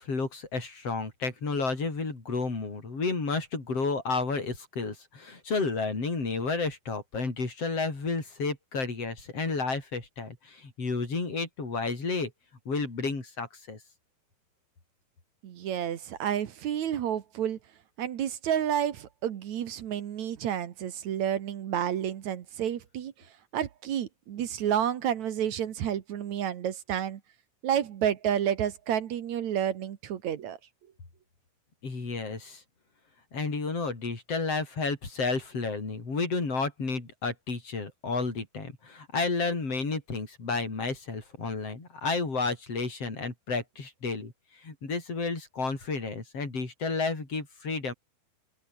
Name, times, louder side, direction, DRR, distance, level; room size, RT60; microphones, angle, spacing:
voice 1, 0.0-12.3 12.7-13.8 31.8-32.6 33.3-47.9, left 4 dB, 35° left, 6.5 m, -31 dB
voice 2, 15.4-17.6 18.0-23.1 23.5-27.2 27.6-30.6, right 10 dB, 60° right, 2.3 m, -30 dB
open air
omnidirectional pair, 4.5 m